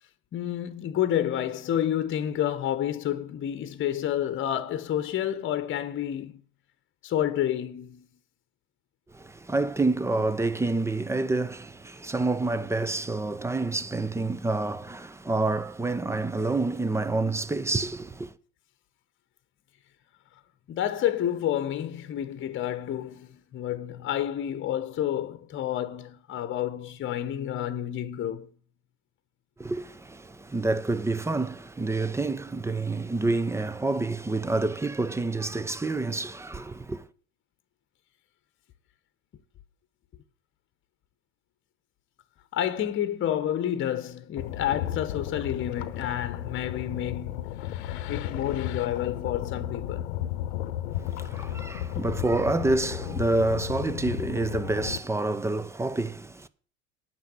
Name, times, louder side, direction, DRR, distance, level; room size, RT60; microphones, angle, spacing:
voice 1, 0.3-6.4 7.0-8.1 20.7-28.5 42.5-47.5 48.1-50.1, left 11 dB, 35° left, 1.1 m, -29 dB
voice 2, 9.1-18.3 29.6-37.1 50.9-56.5, right 2 dB, 10° right, 0.7 m, -28 dB
sound 1, 44.4-55.0, left 12 dB, 65° left, 1.0 m, -34 dB
9.4 x 6.1 x 8.2 m
hypercardioid pair, 80°, 36 cm